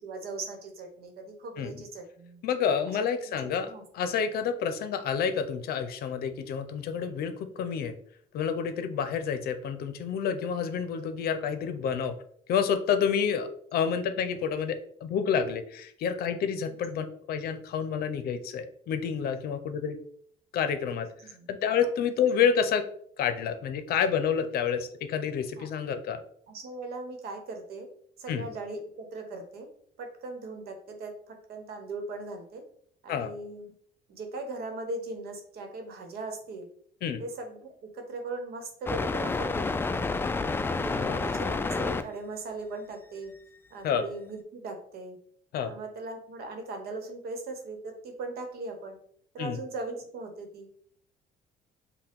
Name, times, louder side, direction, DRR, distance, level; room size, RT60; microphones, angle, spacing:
voice 1, 0.0-2.4 2.9-3.0 3.3-3.8 21.2-21.5 25.6-25.7 26.5-27.9 28.2-29.7 30.0-32.6 33.0-33.7 34.1-36.7 37.2-40.0 40.6-43.3 43.7-45.2 45.7-49.0 49.3-50.7, right 2 dB, 65° right, 5 dB, 1.1 m, -39 dB
voice 2, 2.4-3.7 3.9-7.9 8.3-12.1 12.5-20.0 20.5-22.9 23.2-26.2 28.3-28.5 33.1-33.3 37.0-37.2 40.9-41.2 43.8-44.0 45.5-45.7 49.4-49.6, left 7 dB, 65° left, 8 dB, 0.6 m, -29 dB
sound 1, 38.9-42.0, left 3 dB, 15° left, 0.3 m, -29 dB
5.5 x 2.2 x 3.6 m, 0.63 s
cardioid pair, 110°, 17 cm